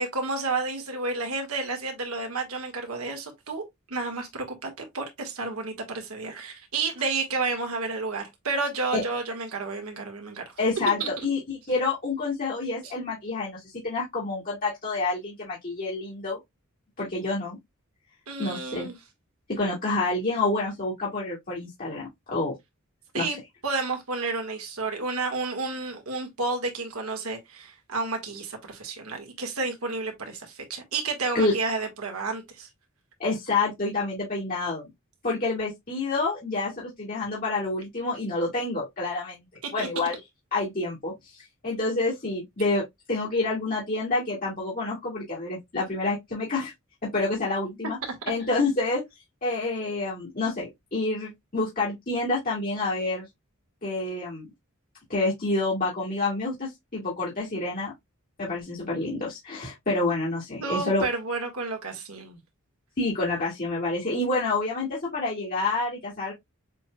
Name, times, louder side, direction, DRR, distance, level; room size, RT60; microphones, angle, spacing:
voice 1, 0.0-10.5 11.0-11.1 12.8-12.9 18.3-19.0 23.1-23.4 23.6-32.7 39.6-39.9 60.6-62.4, right 3 dB, 85° right, 1.6 m, -31 dB
voice 2, 10.6-16.4 17.0-17.6 18.4-18.9 19.5-22.5 23.1-23.3 31.3-31.5 33.2-34.8 35.2-39.4 39.7-40.2 40.5-41.1 41.6-42.8 43.1-46.7 47.1-48.0 48.3-49.0 49.4-53.3 53.8-54.5 55.1-57.9 58.4-61.0 63.0-66.3, left 3 dB, 40° left, 1.9 m, -28 dB
6.8 x 3.2 x 2.2 m
head